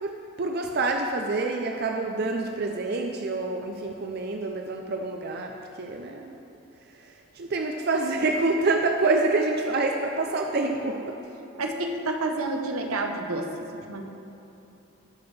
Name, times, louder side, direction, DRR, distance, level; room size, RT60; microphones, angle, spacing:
voice 1, 0.0-6.4 7.0-11.2, right 3 dB, 45° right, 3 dB, 0.5 m, -27 dB
voice 2, 11.6-13.5 13.9-14.0, right 2 dB, 80° right, 3 dB, 0.9 m, -29 dB
18.0 x 6.2 x 3.3 m, 2.9 s
head